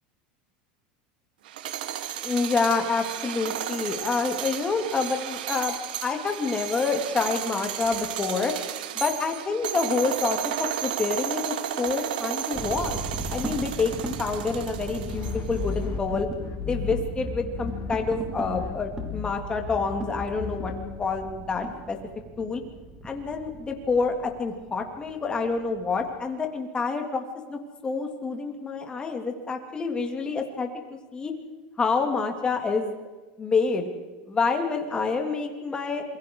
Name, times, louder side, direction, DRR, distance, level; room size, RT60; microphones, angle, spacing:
sound 1, 1.5-15.6, right 11 dB, 90° right, 1.7 m, -33 dB
voice 1, 2.2-5.8 6.0-8.5 8.9-13.0 13.3-16.3 16.6-20.7 21.0-22.0 22.4-22.6 23.0-27.2 27.5-30.7 31.1-31.3 31.8-33.0 33.4-33.9 34.3-36.0, left 4 dB, 20° left, 4 dB, 3.3 m, -27 dB
sound 2, 12.5-26.2, right 2 dB, 15° right, 3.8 m, -37 dB
sound 3, 15.1-18.2 18.4-21.0, left 7 dB, 40° left, 3.1 m, -34 dB
28.0 x 22.5 x 4.9 m, 1.3 s
supercardioid pair, 130°, 5 cm